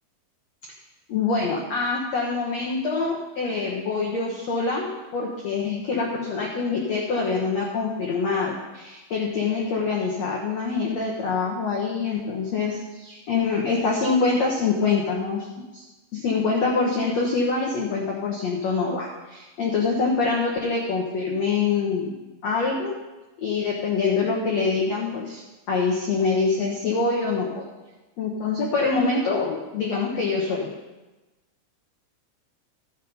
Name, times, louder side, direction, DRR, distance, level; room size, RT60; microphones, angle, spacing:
voice 1, 1.1-15.5 15.7-15.8 16.1-22.1 22.4-23.0 23.4-27.7 28.2-30.7, left 4 dB, 85° left, -1 dB, 1.5 m, -25 dB
14.0 x 6.3 x 5.4 m, 1.1 s
omnidirectional pair, 4.9 m